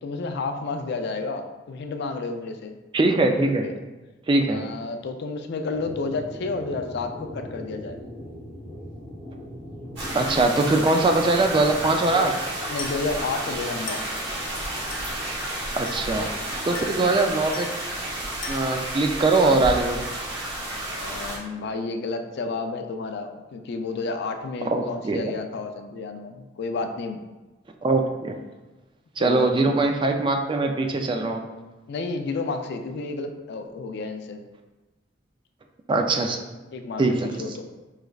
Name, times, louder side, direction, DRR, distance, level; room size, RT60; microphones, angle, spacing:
voice 1, 0.0-2.8 3.3-3.7 4.5-8.0 12.1-12.3 12.7-14.0 20.9-27.2 29.2-29.7 31.9-34.4 36.7-37.0 37.4-37.7, left 3 dB, 60° left, 6 dB, 0.4 m, -31 dB
voice 2, 2.9-3.6 4.3-4.6 10.1-12.3 15.8-16.3 16.7-17.7 18.5-20.1 24.7-25.3 27.8-28.4 29.2-31.4 35.9-36.4 37.0-37.3, right 2 dB, 25° right, 4 dB, 0.3 m, -22 dB
sound 1, 5.7-12.1, left 1 dB, 10° left, 1.4 m, -40 dB
sound 2, 10.0-21.4, right 1 dB, 65° right, 1.2 m, -31 dB
Glass, 12.8-13.1 13.9-14.2 14.9-15.2 15.9-16.2 16.7-17.1 17.5-17.9 18.4-18.8, left 5 dB, 85° left, 0.8 m, -39 dB
4.8 x 3.2 x 2.3 m, 1.2 s
head